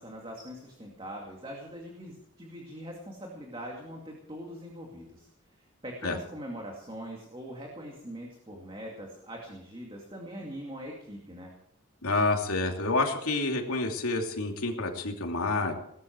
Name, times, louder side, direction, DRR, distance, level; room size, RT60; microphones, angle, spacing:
voice 1, 0.0-5.3 5.8-11.5, equal, 25° right, 0 dB, 2.4 m, -42 dB
voice 2, 12.0-15.7, left 3 dB, 85° left, 2 dB, 2.8 m, -28 dB
19.0 x 13.0 x 4.7 m, 0.75 s
head